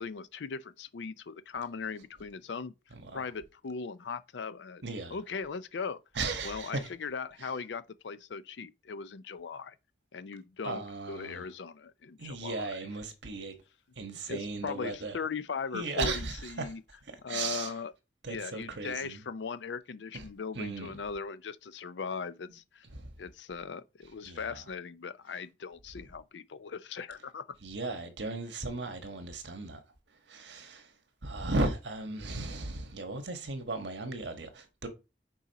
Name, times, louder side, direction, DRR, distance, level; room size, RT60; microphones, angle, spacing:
voice 1, 0.0-2.7 3.1-4.8 5.1-6.0 6.4-9.8 10.1-12.7 14.3-16.8 17.2-17.9 18.3-22.9 23.2-27.4, left 5 dB, 80° left, 0.5 m, -39 dB
voice 2, 4.8-5.2 6.2-6.9 10.6-11.4 12.2-13.6 14.0-15.2 15.7-16.6 17.1-17.7 18.2-19.2 20.1-20.2 20.5-20.9 22.9-23.1 24.2-24.6 27.6-29.8 30.3-30.9 31.2-34.9, right 3 dB, 85° right, 1.4 m, -36 dB
6.2 x 4.1 x 4.1 m
head